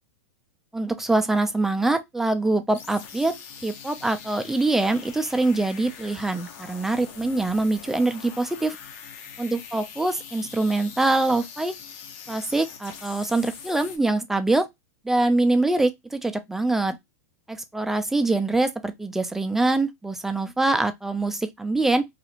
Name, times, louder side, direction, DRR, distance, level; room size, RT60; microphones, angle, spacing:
voice 1, 0.7-3.4 3.6-8.8 9.4-11.8 12.3-14.7 15.0-17.0 17.5-22.1, right 2 dB, 5° right, 0.3 m, -24 dB
sound 1, 2.7-14.0, left 7 dB, 50° left, 0.6 m, -43 dB
2.4 x 2.4 x 2.8 m
hypercardioid pair, 120°, 9 cm